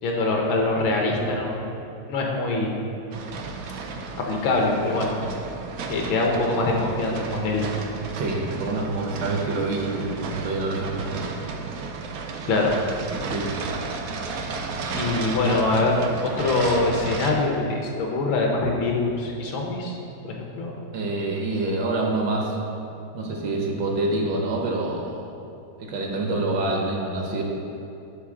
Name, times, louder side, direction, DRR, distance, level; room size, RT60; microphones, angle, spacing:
voice 1, 0.0-1.8 2.1-2.7 4.2-5.1 5.9-7.7 12.5-12.7 14.9-20.0 20.3-20.7, left 2 dB, 75° left, 0 dB, 1.7 m, -24 dB
sound 1, 3.1-17.3, right 4 dB, 90° right, 0.7 m, -33 dB
voice 2, 8.1-11.3 13.2-13.5 20.9-22.6 23.1-25.3 25.8-27.4, right 2 dB, 65° right, 0 dB, 1.5 m, -26 dB
11.0 x 3.9 x 3.7 m, 2.8 s
omnidirectional pair, 2.2 m